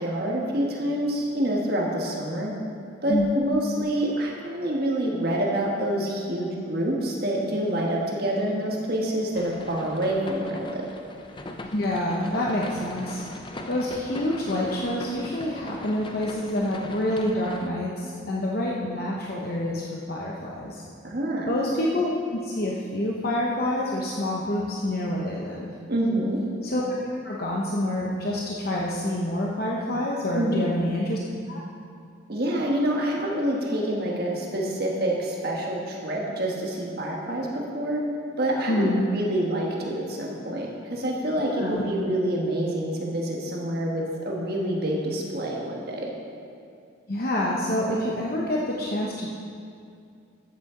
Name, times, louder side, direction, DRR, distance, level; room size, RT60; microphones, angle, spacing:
voice 1, 0.0-2.5 3.0-10.9 21.0-21.5 25.9-26.4 30.3-30.7 32.3-38.0 38.4-46.1, right 1 dB, 50° right, -2 dB, 1.4 m, -27 dB
sound 1, 9.3-17.7, left 1 dB, 25° left, 0.6 m, -40 dB
voice 2, 11.7-13.2 13.7-20.8 21.4-25.7 26.6-26.8 27.2-31.2 31.5-31.6 38.7-39.1 41.6-41.8 47.1-49.3, left 1 dB, 50° left, -3 dB, 0.9 m, -27 dB
14.0 x 8.2 x 3.8 m, 2.4 s
head